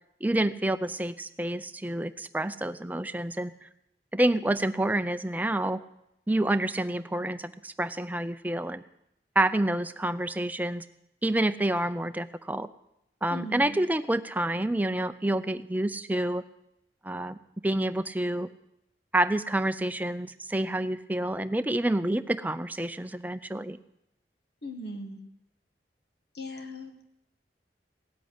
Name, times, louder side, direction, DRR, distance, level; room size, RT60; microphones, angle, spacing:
voice 1, 0.2-3.7 4.1-5.8 6.3-8.8 9.4-10.8 11.2-12.7 13.2-16.4 17.0-17.4 17.6-18.5 19.1-23.8, right 1 dB, 10° right, 11 dB, 0.5 m, -28 dB
voice 2, 13.3-13.8 24.6-25.2 26.3-26.9, left 1 dB, 65° left, 6 dB, 1.8 m, -38 dB
16.5 x 8.2 x 9.8 m, 0.82 s
head